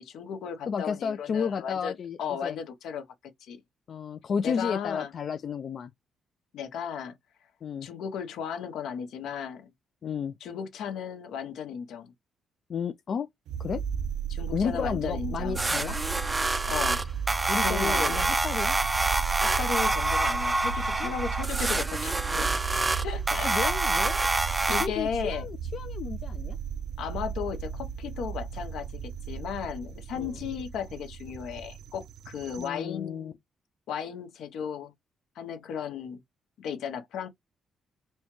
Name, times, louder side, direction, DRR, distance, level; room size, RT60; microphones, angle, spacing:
voice 1, 0.0-3.0 3.4-3.6 4.4-5.1 6.5-7.1 7.8-9.7 10.4-12.1 14.3-15.6 16.7-17.1 17.6-18.2 19.4-22.6 23.0-23.7 24.3-25.5 27.0-33.4 33.9-34.9 35.4-36.2 36.6-37.3, left 7 dB, 80° left, 0.8 m, -35 dB
voice 2, 0.7-2.6 3.9-5.9 7.6-7.9 10.0-10.3 12.7-13.3 13.6-13.8 14.5-16.0 17.5-18.8 21.0-21.1 23.4-24.2 24.8-26.6 30.2-30.4 32.6-33.3, left 6 dB, 55° left, 0.3 m, -32 dB
sound 1, 13.5-32.7, right 7 dB, 85° right, 0.5 m, -35 dB
sound 2, 15.5-24.9, right 2 dB, 15° right, 0.4 m, -27 dB
4.3 x 2.3 x 3.0 m
cardioid pair, 90°, 0 cm